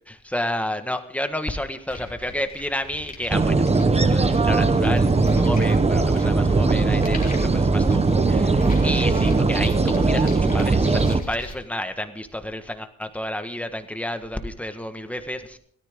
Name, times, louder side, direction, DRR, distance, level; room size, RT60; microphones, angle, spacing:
voice 1, 0.1-15.6, left 1 dB, 5° left, 7 dB, 1.5 m, -31 dB
sound 1, 1.9-11.5, left 2 dB, 30° left, 3.3 m, -39 dB
sound 2, 3.3-11.2, right 3 dB, 20° right, 1.0 m, -19 dB
17.5 x 14.0 x 3.7 m, 0.64 s
cardioid pair, 90°, 30 cm